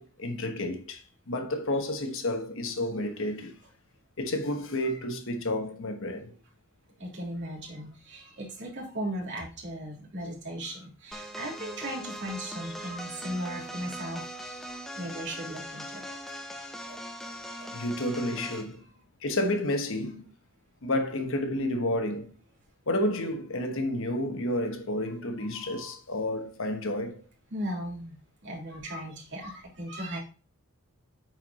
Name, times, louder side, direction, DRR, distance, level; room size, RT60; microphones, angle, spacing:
voice 1, 0.0-3.6 4.2-6.3 10.7-10.8 12.6-12.7 17.7-18.8 19.2-20.2 20.8-22.4 22.9-27.2, left 1 dB, 60° left, 1.1 m, -30 dB
voice 2, 7.0-14.2 14.5-17.0 17.4-17.7 25.5-25.9 27.5-28.2 28.4-30.2, right 1 dB, 55° right, 3.2 m, -37 dB
sound 1, 11.1-18.7, equal, ahead, 0.8 m, -41 dB
9.2 x 4.7 x 4.1 m
head